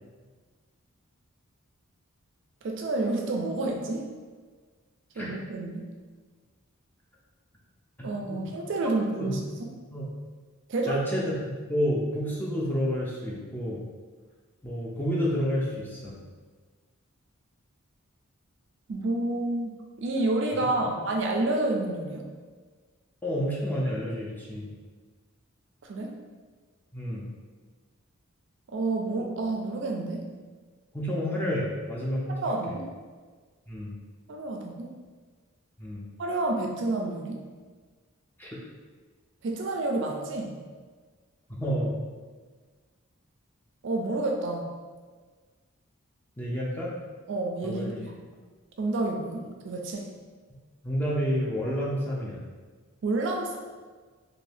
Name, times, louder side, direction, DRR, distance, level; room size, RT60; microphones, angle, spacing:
voice 1, 2.6-4.1 5.2-5.9 8.0-9.7 10.7-11.0 18.9-22.3 25.8-26.1 28.7-30.3 32.4-32.9 34.3-35.0 36.2-37.4 39.4-40.6 43.8-44.7 47.3-48.2 48.8-50.1 53.0-53.6, right 2 dB, 55° right, 1 dB, 0.4 m, -29 dB
voice 2, 8.0-8.5 9.2-9.3 9.9-10.1 10.9-13.8 14.6-16.2 23.2-24.7 26.9-27.2 30.9-32.4 33.7-33.9 35.8-36.1 38.4-38.5 41.6-41.9 46.4-46.9 47.6-48.0 50.8-52.4, equal, 10° left, -5 dB, 0.4 m, -29 dB
2.6 x 2.6 x 3.3 m, 1.4 s
head